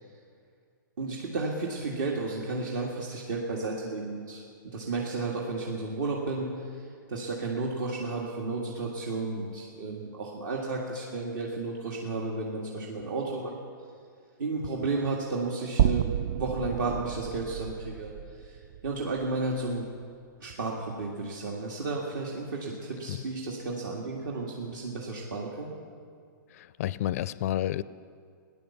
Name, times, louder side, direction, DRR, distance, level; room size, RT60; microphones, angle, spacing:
voice 1, 1.0-6.5 6.8-13.6 14.4-18.1 18.4-18.6 18.8-19.9 20.4-25.7, right 3 dB, 60° right, -2 dB, 2.0 m, -33 dB
sound 1, 15.8-20.0, right 10 dB, 45° right, 0.3 m, -30 dB
voice 2, 26.5-27.8, left 12 dB, 45° left, 18 dB, 0.4 m, -30 dB
16.5 x 10.5 x 7.2 m, 2.2 s
hypercardioid pair, 155°, 11 cm